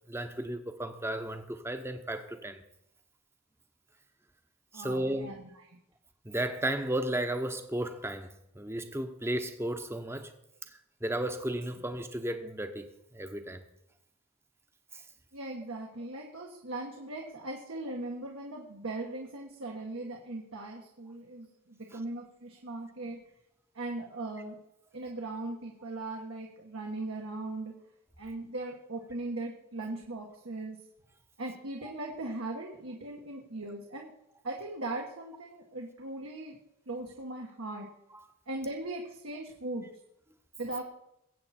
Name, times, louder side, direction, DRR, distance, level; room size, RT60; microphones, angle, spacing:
voice 1, 0.1-2.6 4.7-5.3 6.2-10.3 10.7-12.9 13.1-13.6 14.9-15.0 21.9-22.0, right 1 dB, 10° right, 0.9 m, -34 dB
voice 2, 4.7-5.8 15.3-23.2 23.7-24.6 24.9-27.7 28.2-30.8 31.4-34.1 34.4-36.6 36.9-37.9 38.5-39.8 40.6-40.8, right 2 dB, 75° right, 1.6 m, -39 dB
21.5 x 8.4 x 4.4 m
head